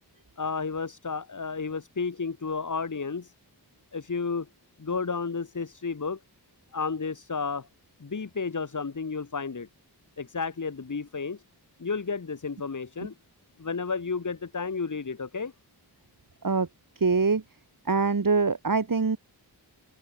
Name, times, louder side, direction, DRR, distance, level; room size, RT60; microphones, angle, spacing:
voice 1, 0.4-3.3 3.9-4.5 4.8-6.2 6.7-7.7 8.0-9.7 10.2-11.4 11.8-13.1 13.6-15.5, left 4 dB, 50° left, 1.8 m, -32 dB
voice 2, 17.0-17.4 17.9-19.2, right 4 dB, 55° right, 2.9 m, -23 dB
open air
wide cardioid pair, 85°, 41 cm